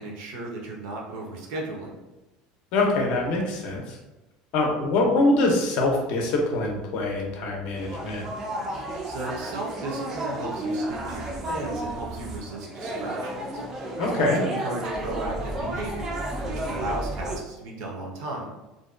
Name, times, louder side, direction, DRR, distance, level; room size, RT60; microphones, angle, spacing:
voice 1, 0.0-1.9 9.1-13.6 14.1-18.5, right 2 dB, 70° right, -1 dB, 0.6 m, -35 dB
voice 2, 2.7-4.0 4.5-8.2 14.0-14.4, left 2 dB, 55° left, 0 dB, 0.5 m, -24 dB
sound 1, 7.7-17.4, right 1 dB, 20° right, 0.3 m, -32 dB
2.5 x 2.2 x 2.4 m, 1.0 s
cardioid pair, 165°, 2 cm